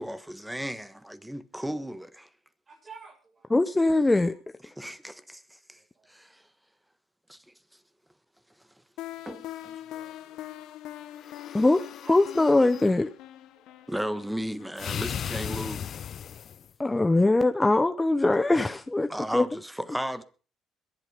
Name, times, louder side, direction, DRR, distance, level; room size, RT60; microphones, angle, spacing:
voice 1, 0.0-2.3 4.6-5.8 6.1-6.4 7.3-7.4 9.2-9.8 13.9-15.9 19.1-20.2, equal, 5° right, 1.3 m, -35 dB
voice 2, 2.7-3.5 4.3-4.4 5.7-6.1 9.3-10.5 12.0-12.2 13.5-13.9, right 4 dB, 35° right, 7.6 m, -48 dB
voice 3, 3.5-4.3 11.5-11.8 12.1-13.1 16.8-19.4, left 2 dB, 15° left, 0.8 m, -22 dB
sound 1, 9.0-15.7, left 13 dB, 75° left, 1.0 m, -43 dB
sound 2, 11.2-12.9 14.8-16.7, left 8 dB, 55° left, 0.6 m, -36 dB
21.5 x 8.1 x 5.3 m
supercardioid pair, 80°, 0 cm